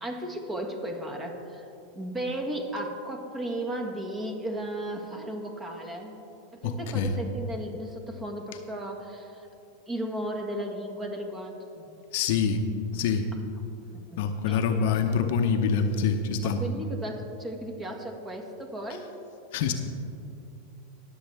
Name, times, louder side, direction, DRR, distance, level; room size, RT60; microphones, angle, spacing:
voice 1, 0.0-1.7 1.9-6.2 6.5-9.5 9.9-11.9 12.9-13.0 13.9-14.0 14.4-15.1 16.4-19.1, right 1 dB, 20° right, 3 dB, 1.8 m, -35 dB
voice 2, 6.6-7.1 12.1-12.6 12.9-13.3 14.2-16.6 19.5-19.7, left 6 dB, 65° left, 6 dB, 0.8 m, -25 dB
20.5 x 7.2 x 3.5 m, 2.8 s
hypercardioid pair, 110°, 0 cm